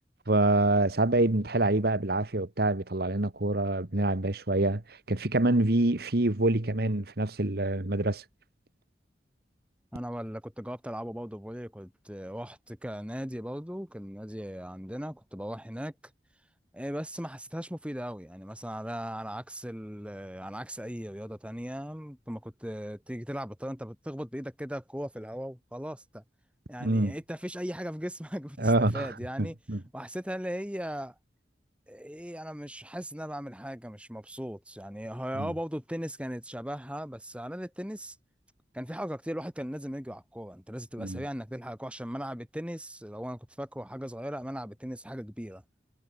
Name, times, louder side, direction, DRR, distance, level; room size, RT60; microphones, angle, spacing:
voice 1, 0.3-4.8 5.1-8.2 26.8-27.1 28.6-29.1 29.4-29.8 35.4-35.5 41.0-41.2, right 2 dB, 60° right, 1.6 m, -26 dB
voice 2, 9.9-15.9 16.7-26.2 26.7-29.6 29.9-31.1 31.9-38.2 38.7-45.6, equal, 5° right, 7.7 m, -38 dB
head